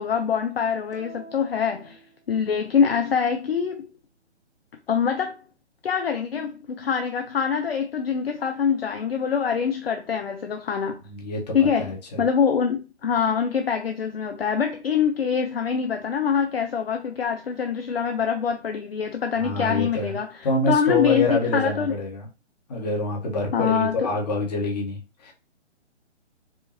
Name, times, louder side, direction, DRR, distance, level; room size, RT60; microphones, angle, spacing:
voice 1, 0.0-2.0 2.3-3.9 4.9-5.4 5.8-11.0 11.5-21.9 23.5-24.1, left 7 dB, 60° left, 0.6 m, -24 dB
sound 1, 0.9-2.7, right 2 dB, 70° right, 1.4 m, -47 dB
voice 2, 11.0-12.2 19.4-20.2 20.4-22.3 22.7-25.3, left 2 dB, 35° left, 1.2 m, -26 dB
4.8 x 2.5 x 2.8 m
figure-of-eight pair, 135°, 35 cm